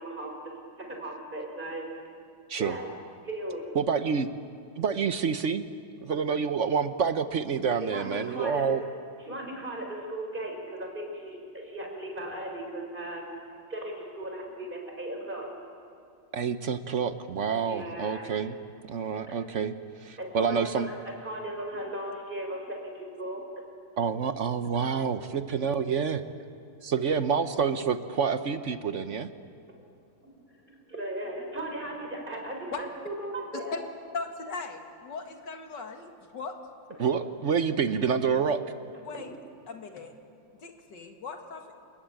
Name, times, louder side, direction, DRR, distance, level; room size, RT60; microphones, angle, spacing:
voice 1, 0.0-1.8 2.6-2.9 3.2-3.6 7.8-8.7 9.2-13.2 13.7-15.5 17.6-18.3 19.0-19.3 20.2-23.4 30.6-33.7, right 1 dB, 25° right, 1 dB, 5.2 m, -37 dB
voice 2, 3.7-4.3 4.8-5.6 6.0-8.8 16.3-18.6 18.9-19.7 20.0-20.9 24.0-26.2 26.8-29.3 37.0-38.6, right 6 dB, 50° right, 10 dB, 1.0 m, -28 dB
voice 3, 34.1-36.5 39.0-39.3 39.7-40.1 40.6-41.8, left 4 dB, 65° left, 4 dB, 2.7 m, -38 dB
29.5 x 21.0 x 8.9 m, 2.4 s
omnidirectional pair, 2.1 m